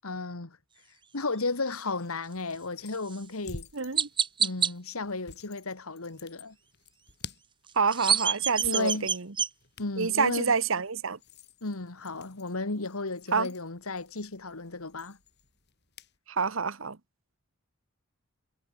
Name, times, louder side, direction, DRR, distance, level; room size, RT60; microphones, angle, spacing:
voice 1, 0.0-0.6 1.1-3.7 4.4-6.6 8.6-9.1 9.8-10.5 11.6-15.2, left 3 dB, 85° left, 1.8 m, -34 dB
sound 1, 1.6-16.2, left 4 dB, 50° left, 5.1 m, -51 dB
Chirp tweet, 3.1-3.2 4.0-4.7 7.7-9.5, right 7 dB, 20° right, 1.5 m, -27 dB
voice 2, 3.7-4.1 7.8-9.3 10.0-11.2 13.3-13.5 16.3-17.0, right 5 dB, 65° right, 1.1 m, -27 dB
head